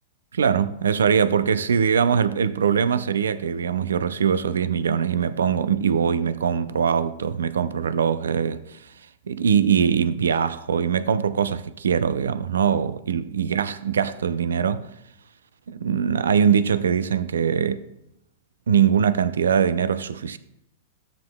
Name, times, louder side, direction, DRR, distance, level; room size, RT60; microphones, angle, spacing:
voice 1, 0.3-8.9 9.3-14.8 15.7-17.8 18.7-20.4, right 7 dB, 85° right, 0.4 m, -22 dB
13.0 x 7.6 x 2.2 m
hypercardioid pair, 120°, 0 cm